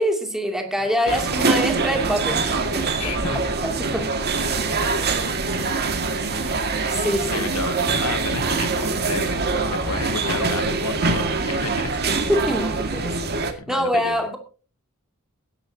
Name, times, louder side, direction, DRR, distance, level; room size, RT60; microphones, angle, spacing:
voice 1, 0.0-4.1 6.9-7.5 12.2-14.4, equal, ahead, 2.6 m, -25 dB
voice 2, 0.8-1.5 3.0-3.4 7.3-12.0 13.6-14.2, left 5 dB, 80° left, 1.0 m, -32 dB
sound 1, 1.1-13.5, right 3 dB, 50° right, 2.0 m, -24 dB
20.5 x 11.0 x 2.8 m
head